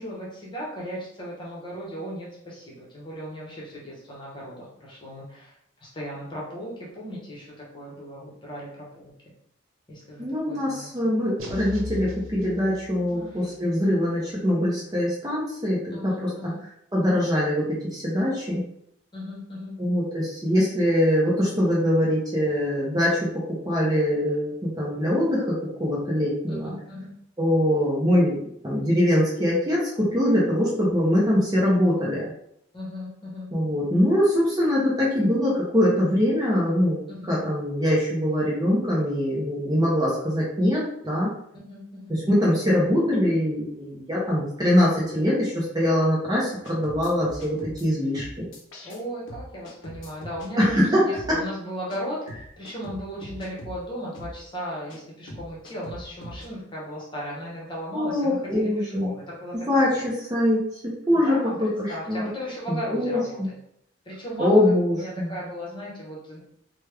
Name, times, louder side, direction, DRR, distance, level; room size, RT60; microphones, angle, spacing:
voice 1, 0.0-9.1 9.9-11.1 13.1-13.5 15.9-16.6 19.1-19.8 26.5-27.1 32.7-33.5 37.1-37.4 41.7-42.2 48.8-59.5 60.0-60.1 61.1-63.5 64.0-66.4, equal, 25° left, -5 dB, 1.0 m, -37 dB
voice 2, 10.2-16.1 16.9-18.6 19.8-26.7 27.4-32.2 33.5-37.0 37.3-41.3 42.3-48.5 50.6-51.4 57.9-59.1 59.7-61.4 62.1-62.3 62.9-63.5 64.4-65.3, left 1 dB, 20° right, -5 dB, 0.7 m, -23 dB
sound 1, 11.4-13.3, left 2 dB, 85° right, 0.7 m, -37 dB
sound 2, 46.6-47.9 48.1-49.0 49.3-50.8 51.1-51.3 51.9-52.0 52.3-53.8 54.1-54.4 54.9-55.0 55.3-56.5, equal, 70° left, 0.7 m, -41 dB
3.1 x 2.2 x 3.3 m, 0.73 s
head